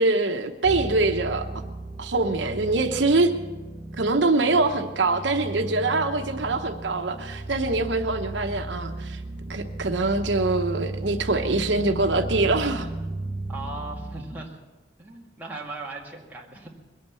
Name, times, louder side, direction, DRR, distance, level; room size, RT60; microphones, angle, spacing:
voice 1, 0.0-1.5 2.0-3.3 4.0-9.2 9.5-12.9, right 3 dB, 80° right, 5 dB, 1.0 m, -24 dB
sound 1, 0.6-14.2, right 2 dB, 45° right, 1.8 m, -35 dB
voice 2, 13.5-14.6 15.0-16.7, right 2 dB, 10° right, -3 dB, 2.1 m, -38 dB
22.0 x 8.8 x 7.0 m, 1.2 s
head